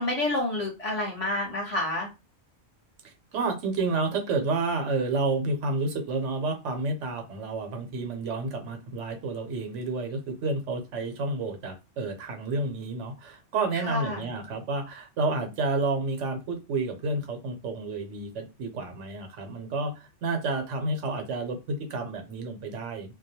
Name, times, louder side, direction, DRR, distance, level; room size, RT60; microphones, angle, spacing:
voice 1, 0.0-2.1 13.8-14.3, left 1 dB, 30° left, -3 dB, 1.0 m, -29 dB
voice 2, 3.0-23.1, right 3 dB, 75° right, 5 dB, 0.9 m, -30 dB
2.2 x 2.1 x 2.7 m, 0.26 s
omnidirectional pair, 1.3 m